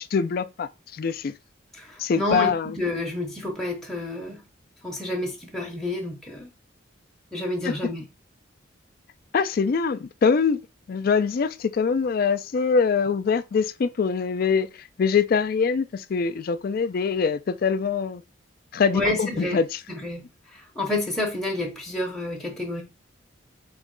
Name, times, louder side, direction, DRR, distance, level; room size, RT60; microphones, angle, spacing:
voice 1, 0.0-1.3 2.0-2.7 7.7-7.8 9.3-10.6 10.9-14.7 15.0-18.2 18.7-19.8, left 5 dB, 50° left, 0.3 m, -23 dB
voice 2, 1.7-4.4 4.8-6.5 7.3-8.0 18.9-19.6 19.9-22.8, left 2 dB, ahead, 0.7 m, -29 dB
4.4 x 3.1 x 3.7 m
head